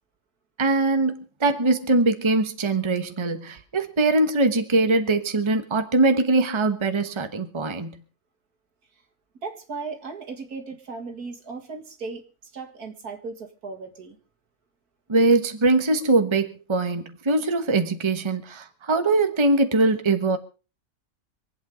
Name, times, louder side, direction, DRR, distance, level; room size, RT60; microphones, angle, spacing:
voice 1, 0.6-8.0 15.1-20.4, right 2 dB, 20° right, 1.1 m, -22 dB
voice 2, 9.4-14.2, right 4 dB, 75° right, 2.5 m, -36 dB
25.5 x 8.7 x 5.0 m
omnidirectional pair, 1.6 m